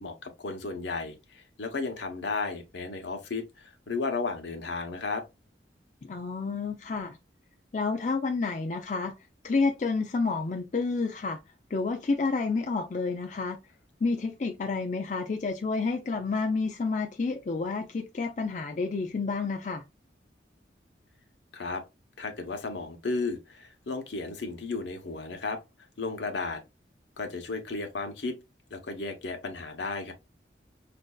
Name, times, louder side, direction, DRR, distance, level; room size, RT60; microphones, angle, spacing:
voice 1, 0.0-5.2 21.5-21.8 22.2-25.6 26.0-26.6 27.2-28.4 28.7-30.1, left 3 dB, 80° left, 0.8 m, -34 dB
voice 2, 6.0-7.2 7.7-9.1 9.4-11.4 11.7-13.6 14.0-19.8, left 4 dB, 40° left, 0.4 m, -29 dB
5.2 x 2.5 x 2.3 m
head